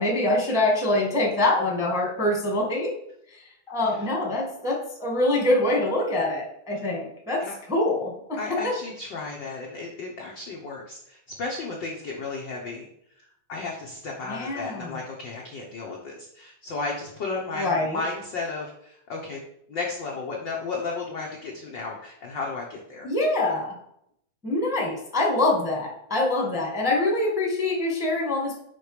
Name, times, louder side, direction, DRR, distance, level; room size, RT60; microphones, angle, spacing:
voice 1, 0.0-2.9 3.4-8.4 8.6-8.7 14.3-15.0 17.5-18.0 23.0-23.7 24.4-28.6, left 2 dB, ahead, -1 dB, 1.1 m, -25 dB
voice 2, 8.4-12.9 13.2-19.4 19.7-23.1, left 3 dB, 65° left, -2 dB, 1.1 m, -34 dB
6.4 x 5.2 x 5.0 m, 0.74 s
omnidirectional pair, 3.4 m